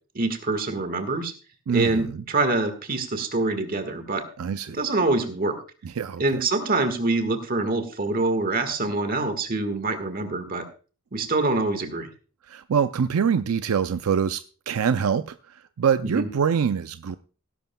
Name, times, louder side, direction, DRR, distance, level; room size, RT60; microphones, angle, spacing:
voice 1, 0.1-1.3 1.7-4.2 4.7-5.6 6.2-10.6 11.1-12.1 16.1-16.3, right 2 dB, 40° right, 1.6 m, -25 dB
voice 2, 1.7-2.1 4.4-4.8 5.8-6.4 12.5-17.2, right 7 dB, 80° right, 0.4 m, -25 dB
17.5 x 11.0 x 2.2 m
head